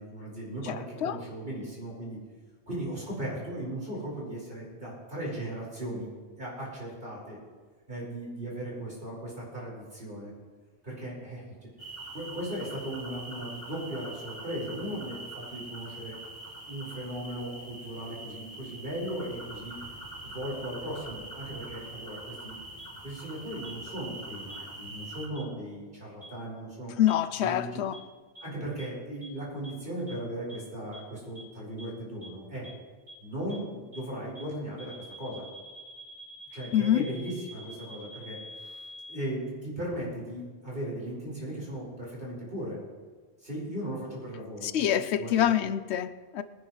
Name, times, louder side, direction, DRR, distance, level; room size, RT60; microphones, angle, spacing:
voice 1, 0.0-2.2 2.7-6.1 6.4-7.4 7.9-10.3 10.8-11.7 12.1-16.2 16.7-19.8 20.2-22.6 23.0-26.9 27.4-27.8 28.4-32.7 33.2-35.5 36.5-42.8 43.4-45.5, right 1 dB, 55° right, 5.2 m, -37 dB
voice 2, 0.7-1.2 27.0-28.0 36.7-37.0 44.6-46.4, left 11 dB, 85° left, 0.9 m, -26 dB
sound 1, 11.8-25.3, right 2 dB, 30° left, 3.5 m, -43 dB
sound 2, 22.8-22.9 23.6-23.7 24.5-24.6 25.4-25.5 26.2-26.3 27.1-27.2 27.9-28.0 28.4-28.5 28.8-28.9 29.2-29.3 29.6-29.7 30.1-30.2 30.5-30.6 30.9-31.0 31.4-31.5 31.8-31.9 32.2-32.3 32.6-32.7 33.1-33.2 33.5-33.6 33.9-34.0 34.4-34.5 34.8-39.2, right 1 dB, 85° right, 5.4 m, -46 dB
22.5 x 10.0 x 3.2 m
omnidirectional pair, 1.1 m